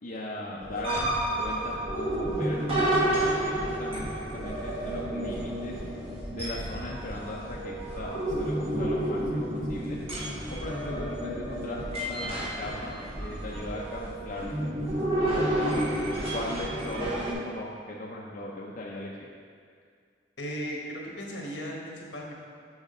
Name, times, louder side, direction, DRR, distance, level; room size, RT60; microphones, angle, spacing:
voice 1, 0.0-2.9 3.4-5.8 6.3-10.0 10.5-12.9 13.2-14.7 15.3-15.6 15.9-19.3, left 1 dB, 45° left, -3 dB, 0.5 m, -38 dB
sound 1, 0.6-17.3, right 1 dB, 35° right, 1.4 m, -30 dB
voice 2, 20.4-22.3, equal, 75° left, -2 dB, 1.3 m, -36 dB
6.2 x 6.2 x 3.7 m, 2.1 s
head